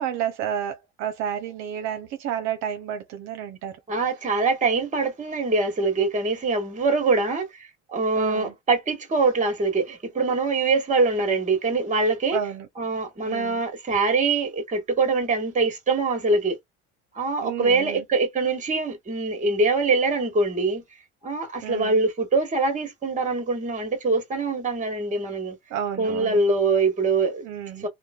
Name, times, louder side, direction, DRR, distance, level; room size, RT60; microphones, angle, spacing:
voice 1, 0.0-3.7 8.1-8.5 12.3-12.7 13.3-13.6 17.4-18.0 21.6-22.0 25.7-26.4 27.4-27.9, right 9 dB, 65° right, 0.7 m, -31 dB
voice 2, 3.9-12.4 12.8-16.6 17.1-20.8 21.2-25.6 26.0-27.4 27.8-27.9, right 3 dB, 25° right, 1.3 m, -23 dB
2.9 x 2.1 x 2.3 m
cardioid pair, 120°, 30 cm